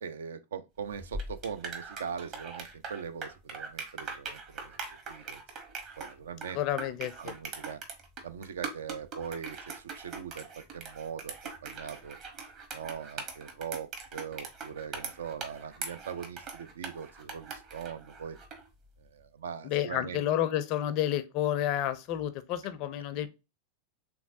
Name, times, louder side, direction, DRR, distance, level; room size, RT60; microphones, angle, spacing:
voice 1, 0.0-4.7 5.1-5.4 6.0-6.6 7.2-7.8 8.2-11.3 11.6-12.2 12.7-18.4 19.0-20.2, right 7 dB, 65° right, 0.3 m, -41 dB
sound 1, 0.9-18.7, right 4 dB, 35° right, 1.0 m, -41 dB
voice 2, 6.5-7.3 19.6-23.3, left 11 dB, 40° left, 0.4 m, -30 dB
3.4 x 3.0 x 2.5 m
figure-of-eight pair, 90°, 0 cm